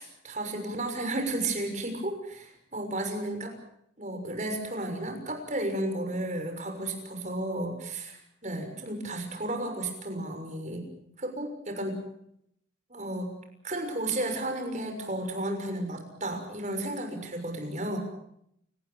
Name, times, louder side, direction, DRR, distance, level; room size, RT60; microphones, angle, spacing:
voice 1, 0.0-3.5 4.0-10.9 11.2-12.0 12.9-13.3 13.6-18.0, right 1 dB, 40° right, 4 dB, 6.5 m, -33 dB
29.5 x 19.0 x 7.4 m, 0.73 s
head